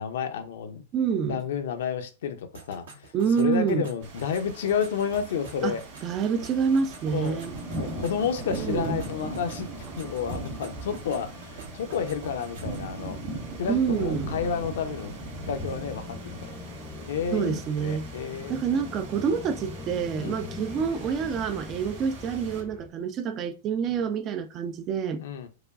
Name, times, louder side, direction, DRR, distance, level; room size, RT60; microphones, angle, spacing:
voice 1, 0.0-0.8 1.2-3.1 3.4-5.8 7.1-7.4 7.8-9.7 10.0-13.2 13.6-15.1 15.5-16.6 17.1-18.6 20.2-20.5 25.2-25.5, left 7 dB, 65° left, 0.6 m, -30 dB
voice 2, 0.9-1.4 3.1-3.9 5.6-5.8 6.0-7.5 8.6-9.0 13.7-14.3 17.3-18.1 18.5-25.2, right 6 dB, 35° right, 0.4 m, -27 dB
sound 1, 2.5-12.9, right 3 dB, 75° right, 1.0 m, -48 dB
sound 2, 4.0-22.6, right 2 dB, 50° right, 1.9 m, -39 dB
sound 3, 6.1-22.9, left 4 dB, 10° left, 0.6 m, -44 dB
4.7 x 2.2 x 2.4 m
hypercardioid pair, 105°, 0 cm